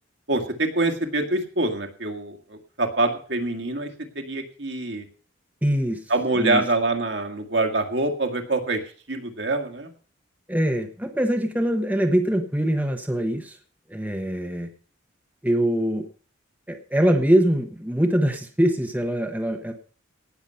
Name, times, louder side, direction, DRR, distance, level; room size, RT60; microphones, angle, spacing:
voice 1, 0.3-3.9 4.2-5.0 6.1-8.8 9.1-9.9, right 2 dB, 60° right, 4 dB, 2.0 m, -25 dB
voice 2, 5.6-6.0 6.4-6.6 10.5-13.6 13.9-14.7 15.4-16.1 16.7-19.7, equal, 10° right, 5 dB, 1.1 m, -23 dB
18.0 x 7.2 x 5.7 m, 0.41 s
head